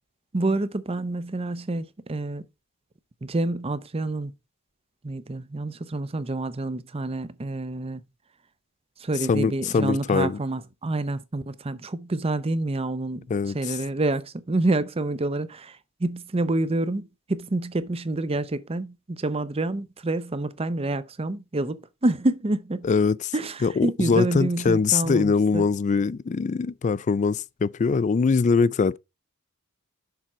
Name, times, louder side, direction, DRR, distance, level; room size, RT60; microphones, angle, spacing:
voice 1, 0.3-2.4 3.2-4.3 5.0-8.0 9.0-13.3 13.5-22.9 23.3-25.6, right 2 dB, 25° right, 0.6 m, -28 dB
voice 2, 9.3-10.4 13.3-13.8 22.8-23.3 23.6-29.0, left 5 dB, 35° left, 0.3 m, -22 dB
6.9 x 4.3 x 5.9 m
head